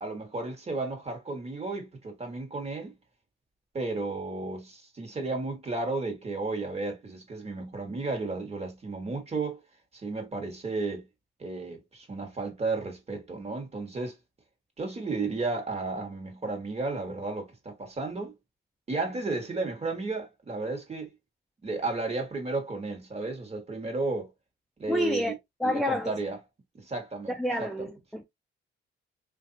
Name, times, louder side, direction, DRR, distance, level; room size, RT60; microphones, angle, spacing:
voice 1, 0.0-2.9 3.7-9.6 10.0-11.1 11.4-14.1 14.8-18.3 18.9-21.1 21.6-24.3 24.8-25.3 25.6-26.4 26.8-27.9, right 3 dB, 30° right, 1.5 m, -33 dB
voice 2, 24.9-25.3 25.6-26.1 27.3-28.2, left 1 dB, ahead, 0.5 m, -28 dB
3.3 x 2.6 x 2.7 m
cardioid pair, 90°, 20 cm